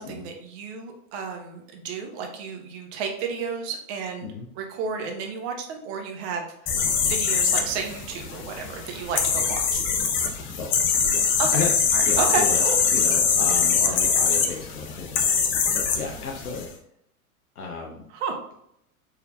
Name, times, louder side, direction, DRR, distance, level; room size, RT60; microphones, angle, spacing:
voice 1, 0.0-6.7 7.0-9.8 11.4-11.6 11.9-12.8 18.1-18.4, right 5 dB, 45° right, 3 dB, 1.0 m, -31 dB
sound 1, 6.7-16.7, left 6 dB, 30° left, 0.6 m, -23 dB
voice 2, 11.1-11.7 12.0-12.6 12.9-16.7 17.6-18.0, left 5 dB, 85° left, -1 dB, 0.8 m, -34 dB
4.7 x 3.2 x 2.3 m, 0.75 s
figure-of-eight pair, 95°, 44 cm